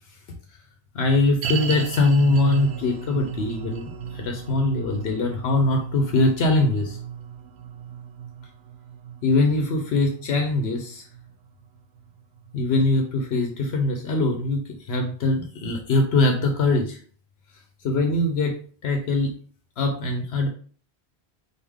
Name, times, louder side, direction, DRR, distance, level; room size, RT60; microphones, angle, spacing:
voice 1, 0.9-7.0 9.2-11.0 12.5-17.0 17.8-18.5 18.8-19.3 19.8-20.5, left 2 dB, 80° left, 3 dB, 1.0 m, -22 dB
sound 1, 1.4-12.7 13.0-13.1 13.7-13.8, right 8 dB, 80° right, 0.8 m, -36 dB
4.0 x 3.5 x 3.5 m, 0.43 s
omnidirectional pair, 1.1 m